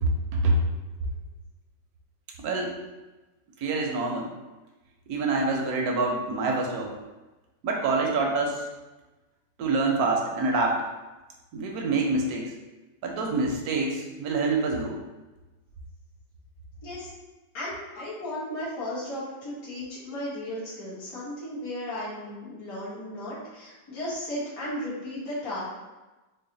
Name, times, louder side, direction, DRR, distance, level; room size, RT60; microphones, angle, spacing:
voice 1, 0.0-0.6 2.4-2.8 3.6-4.3 5.1-6.9 7.6-8.7 9.6-10.9 11.5-12.5 13.0-15.0, right 3 dB, 70° right, 1 dB, 1.0 m, -26 dB
voice 2, 17.5-25.6, left 1 dB, 55° left, -10 dB, 1.6 m, -35 dB
3.9 x 2.1 x 3.8 m, 1.1 s
omnidirectional pair, 1.9 m